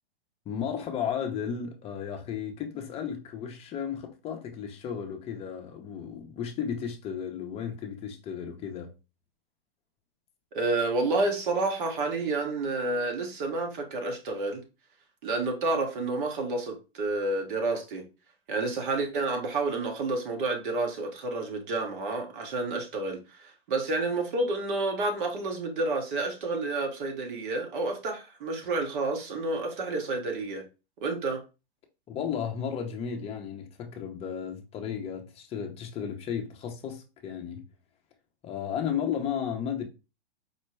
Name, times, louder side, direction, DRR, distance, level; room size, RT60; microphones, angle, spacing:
voice 1, 0.5-8.9 32.1-37.6 38.4-39.8, left 8 dB, 20° left, 0.6 m, -34 dB
voice 2, 10.5-14.6 15.2-18.1 18.5-30.6 31.0-31.4, right 2 dB, 55° right, 1.2 m, -30 dB
4.5 x 2.2 x 3.1 m
hypercardioid pair, 125°, 30 cm